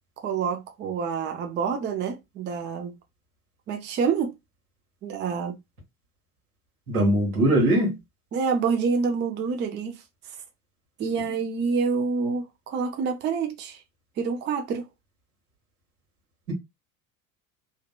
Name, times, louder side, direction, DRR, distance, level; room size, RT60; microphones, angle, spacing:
voice 1, 0.2-2.9 3.7-4.3 5.0-5.6 8.3-10.0 11.0-13.8 14.2-14.9, right 5 dB, 25° right, 0.5 m, -27 dB
voice 2, 6.9-7.9, right 1 dB, 80° right, 1.4 m, -21 dB
2.7 x 2.1 x 2.2 m
hypercardioid pair, 75°, 44 cm